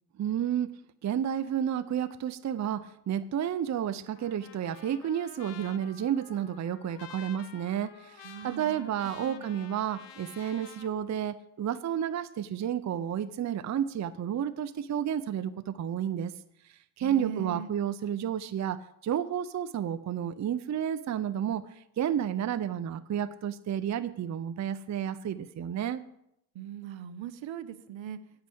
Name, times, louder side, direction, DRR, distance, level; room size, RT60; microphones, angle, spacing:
voice 1, 0.2-0.7 1.0-16.3 17.0-21.6 22.0-26.0, right 9 dB, 35° right, 13 dB, 0.6 m, -31 dB
Trumpet, 4.1-10.9, left 9 dB, 55° left, 1.1 m, -50 dB
voice 2, 8.2-8.9 9.2-9.5 17.0-17.7 26.5-28.2, right 9 dB, 65° right, 14 dB, 0.9 m, -40 dB
9.5 x 5.7 x 7.8 m, 0.78 s
supercardioid pair, 55°, 50 cm